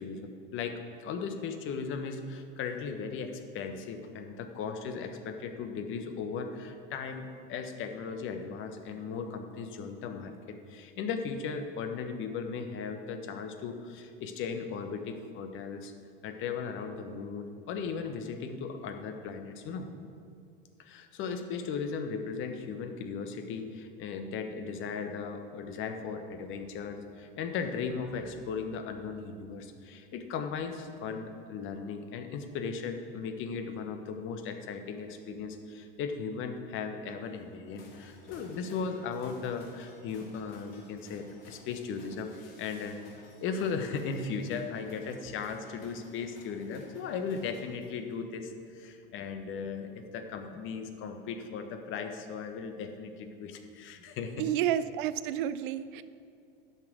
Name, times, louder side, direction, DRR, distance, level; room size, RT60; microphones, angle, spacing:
voice 1, 0.0-15.9 16.2-19.9 20.8-54.4, left 5 dB, 45° left, 6 dB, 1.1 m, -37 dB
sound 1, 37.7-48.1, left 2 dB, 80° left, 2.1 m, -55 dB
voice 2, 54.4-56.0, right 10 dB, 60° right, 15 dB, 0.5 m, -30 dB
10.5 x 5.8 x 6.3 m, 2.4 s
hypercardioid pair, 90°, 29 cm